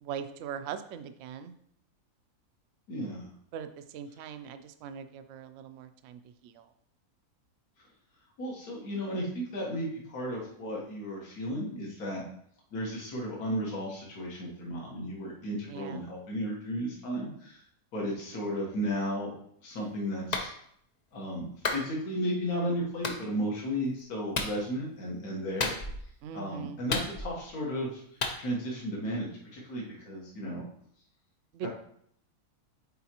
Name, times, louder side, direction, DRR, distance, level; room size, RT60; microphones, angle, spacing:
voice 1, 0.0-1.5 3.5-6.7 15.7-16.1 26.2-26.8 31.5-31.7, right 8 dB, 70° right, 9 dB, 0.8 m, -41 dB
voice 2, 2.9-3.3 4.2-4.3 8.4-12.2 12.7-17.6 17.9-19.3 19.6-20.5 21.1-25.7 26.3-28.0 28.4-30.6 31.6-31.7, equal, 70° left, -3 dB, 1.9 m, -34 dB
Clapping, 20.3-20.5 21.6-21.9 23.0-23.2 24.3-24.6 25.6-26.1 26.9-27.5 28.2-28.4, left 3 dB, 55° left, 0.4 m, -31 dB
8.0 x 4.5 x 2.9 m, 0.67 s
omnidirectional pair, 1.6 m